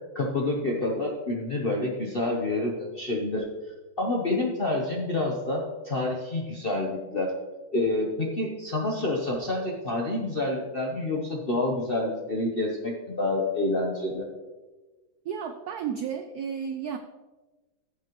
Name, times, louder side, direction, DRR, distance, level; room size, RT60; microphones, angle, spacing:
voice 1, 0.1-3.4 4.0-7.3 7.7-14.3, left 2 dB, 50° left, -1 dB, 0.6 m, -28 dB
voice 2, 15.2-17.0, right 7 dB, 80° right, 7 dB, 0.8 m, -32 dB
14.5 x 7.2 x 3.0 m, 1.2 s
omnidirectional pair, 2.2 m